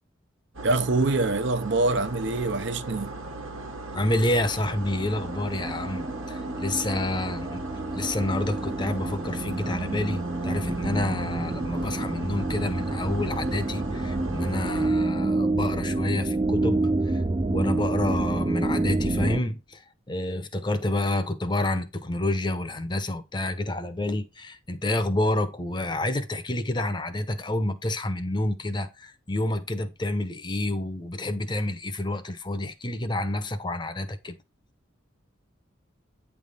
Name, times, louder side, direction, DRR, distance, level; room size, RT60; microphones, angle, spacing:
sound 1, 0.5-14.9, right 2 dB, 90° right, 1.4 m, -38 dB
voice 1, 0.6-3.1, right 2 dB, 60° right, 0.6 m, -25 dB
sound 2, 1.9-3.7 3.9-19.4, right 2 dB, 25° right, 0.4 m, -28 dB
voice 2, 3.9-7.6 7.9-17.2 17.5-34.4, left 1 dB, 20° left, 0.7 m, -29 dB
9.2 x 3.4 x 5.4 m
head